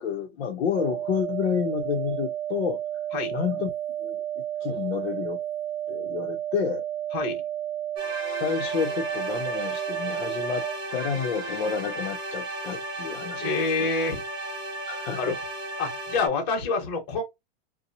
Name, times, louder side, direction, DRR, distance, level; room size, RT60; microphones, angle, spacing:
voice 1, 0.0-2.8 3.3-3.7 4.0-5.4 5.9-6.8 8.4-10.6 10.9-13.9 14.9-15.4, left 7 dB, 85° left, 0.8 m, -30 dB
sound 1, 0.7-10.7, right 11 dB, 55° right, 0.6 m, -32 dB
sound 2, 8.0-16.3, right 1 dB, 15° right, 0.8 m, -34 dB
voice 2, 13.4-14.2 15.1-15.3 15.8-17.2, left 3 dB, 45° left, 1.2 m, -27 dB
2.7 x 2.2 x 2.7 m
supercardioid pair, 165°, 31 cm